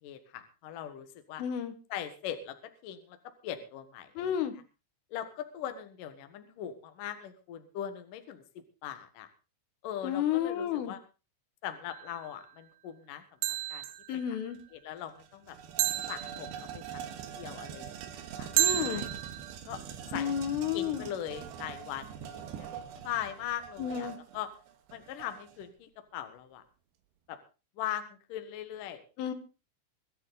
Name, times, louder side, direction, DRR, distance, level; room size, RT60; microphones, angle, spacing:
voice 1, 0.0-1.4 1.9-3.2 3.4-4.4 5.1-9.3 9.8-11.0 11.6-13.2 13.7-13.9 14.1-14.2 14.7-15.6 16.1-16.8 17.4-19.1 19.7-19.8 20.1-20.3 20.7-22.7 23.0-24.5 24.9-26.6 27.3-27.4 27.8-29.0, left 10 dB, 60° left, 8 dB, 2.4 m, -40 dB
voice 2, 1.4-1.7 4.2-4.6 10.0-10.9 14.1-14.6 18.6-19.0 20.1-21.1 23.8-24.2 29.2-29.3, left 9 dB, 80° left, 9 dB, 4.0 m, -31 dB
sound 1, 11.9-12.2 13.4-14.2 15.8-16.9 18.6-19.5, right 15 dB, 85° right, 3.4 m, -31 dB
sound 2, 14.5-14.6 15.0-25.7, right 8 dB, 70° right, 3.2 m, -43 dB
23.0 x 9.8 x 4.0 m, 0.33 s
omnidirectional pair, 5.6 m